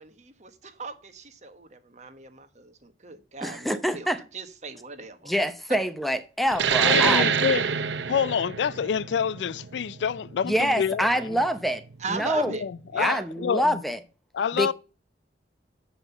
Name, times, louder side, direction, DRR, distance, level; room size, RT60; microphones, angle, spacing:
voice 1, 0.0-5.3 12.0-12.6 12.9-13.3, right 3 dB, 40° right, 1.2 m, -38 dB
voice 2, 3.4-4.2 5.3-7.3 10.4-11.8 12.1-12.5 13.0-14.0 14.5-14.7, equal, ahead, 0.7 m, -26 dB
sound 1, 6.5-11.7, right 7 dB, 80° right, 0.6 m, -26 dB
voice 3, 6.8-7.6 8.1-11.4 12.5-13.8 14.3-14.7, left 7 dB, 80° left, 0.4 m, -27 dB
7.6 x 5.6 x 7.0 m
head